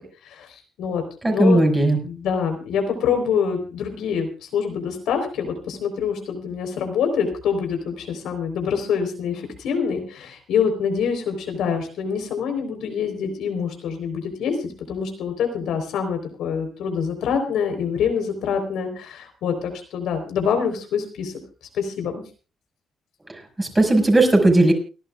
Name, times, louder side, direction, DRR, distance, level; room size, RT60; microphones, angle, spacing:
voice 1, 0.2-1.6 2.0-21.3 21.7-22.2, left 6 dB, 80° left, 6 dB, 4.0 m, -25 dB
voice 2, 1.2-2.0 23.6-24.7, right 2 dB, 15° right, 3 dB, 5.9 m, -16 dB
30.0 x 11.5 x 2.4 m, 0.34 s
cardioid pair, 90°, 0 cm